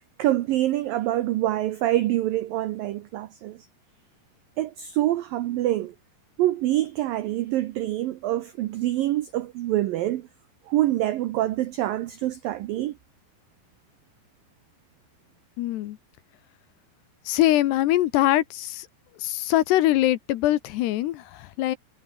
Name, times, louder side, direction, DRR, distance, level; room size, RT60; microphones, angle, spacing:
voice 1, 0.2-3.7 4.6-6.0 6.4-10.3 10.7-13.0, right 14 dB, 85° right, 2.0 m, -25 dB
voice 2, 15.6-16.0 17.3-18.9 19.2-21.8, left 14 dB, 70° left, 2.9 m, -23 dB
omnidirectional pair, 5.3 m